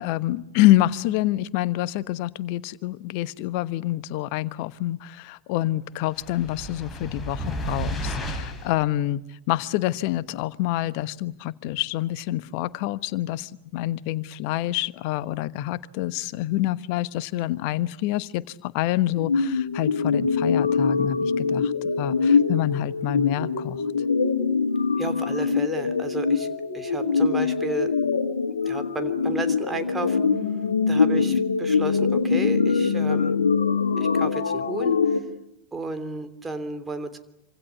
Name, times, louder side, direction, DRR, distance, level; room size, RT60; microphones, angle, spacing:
voice 1, 0.0-9.2 9.5-23.8, left 15 dB, 45° left, 16 dB, 1.2 m, -27 dB
sound 1, 6.1-8.8, equal, 10° left, 7.3 m, -32 dB
sound 2, 19.2-35.2, left 5 dB, 70° left, 2.4 m, -23 dB
voice 2, 25.0-27.9 28.6-30.6 30.9-33.3 34.0-35.2 35.7-37.2, right 3 dB, 10° right, 8 dB, 3.1 m, -33 dB
27.5 x 25.5 x 8.4 m, 0.81 s
figure-of-eight pair, 90°, 0 cm